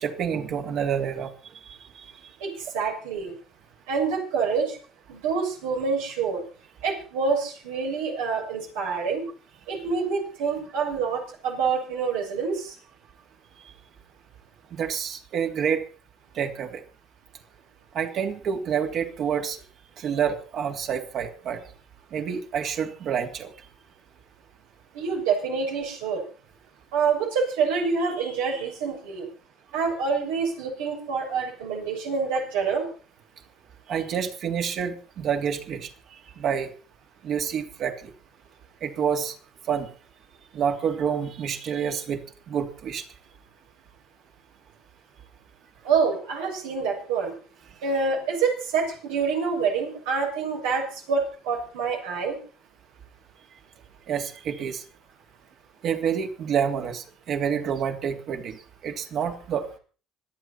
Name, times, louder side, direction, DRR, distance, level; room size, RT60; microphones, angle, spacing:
voice 1, 0.0-1.3 14.7-15.8 16.3-16.8 17.9-19.6 20.0-21.6 22.1-23.5 33.9-35.9 36.4-36.7 37.2-37.9 38.8-39.3 39.7-39.9 40.5-42.2 42.5-43.0 54.1-54.8 55.8-58.6 58.8-59.7, right 7 dB, 60° right, 4 dB, 3.1 m, -28 dB
voice 2, 2.4-3.3 3.9-4.8 5.1-6.4 6.8-9.2 9.7-12.7 24.9-26.2 26.9-29.3 29.7-32.8 45.8-47.3 47.8-52.4, right 5 dB, 90° right, 0 dB, 6.7 m, -26 dB
26.0 x 9.0 x 4.3 m, 0.38 s
supercardioid pair, 85°, 0 cm